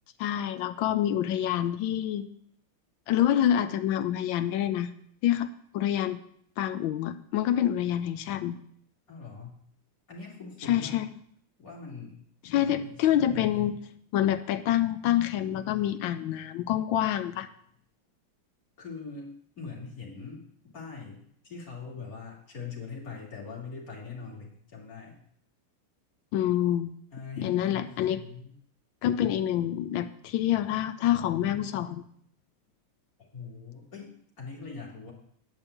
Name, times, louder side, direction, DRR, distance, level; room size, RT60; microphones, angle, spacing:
voice 1, 0.2-2.2 3.1-4.9 5.2-5.5 5.7-6.2 6.6-8.6 10.7-11.1 12.5-13.8 14.1-17.5 26.3-26.9 27.4-28.2 29.0-32.0, left 11 dB, 75° left, 12 dB, 1.3 m, -27 dB
voice 2, 9.1-9.6 10.1-11.0 11.6-12.2 12.6-13.7 18.8-20.4 20.7-25.2 27.1-28.5 33.2-35.1, left 5 dB, 45° left, -3 dB, 3.0 m, -42 dB
9.8 x 5.3 x 8.1 m, 0.65 s
omnidirectional pair, 2.2 m